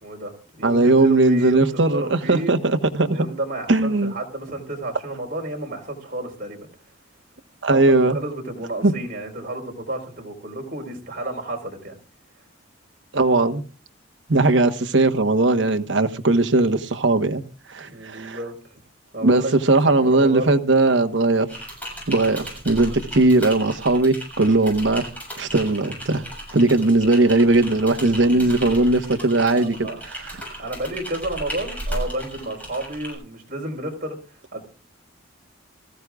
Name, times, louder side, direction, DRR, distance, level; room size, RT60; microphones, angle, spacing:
voice 1, 0.0-2.5 2.8-6.7 7.7-12.0 17.8-18.8 19.1-20.6 22.9-23.1 29.6-30.0 30.6-34.6, right 1 dB, 45° right, 4.2 m, -31 dB
voice 2, 0.6-3.3 3.7-4.1 7.6-8.2 8.8-8.9 13.1-13.6 14.3-17.4 17.7-18.4 19.2-21.5 22.1-25.0 25.4-26.2 26.5-30.3, right 2 dB, 65° right, 1.2 m, -19 dB
Typing, 21.5-33.1, equal, 10° left, 7.2 m, -35 dB
24.5 x 14.5 x 2.4 m
head